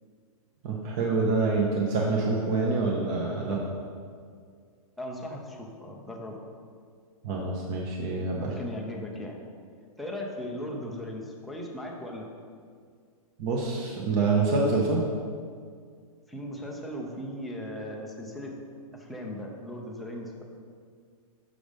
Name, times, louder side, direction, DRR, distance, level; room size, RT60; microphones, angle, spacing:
voice 1, 0.6-3.6 7.2-8.6 13.4-15.0, right 3 dB, 30° right, -2 dB, 0.7 m, -26 dB
voice 2, 5.0-6.4 8.4-9.4 10.0-12.3 16.3-18.5 18.9-20.3, left 1 dB, ahead, -1 dB, 0.3 m, -37 dB
6.2 x 5.0 x 5.1 m, 2.1 s
hypercardioid pair, 160°, 19 cm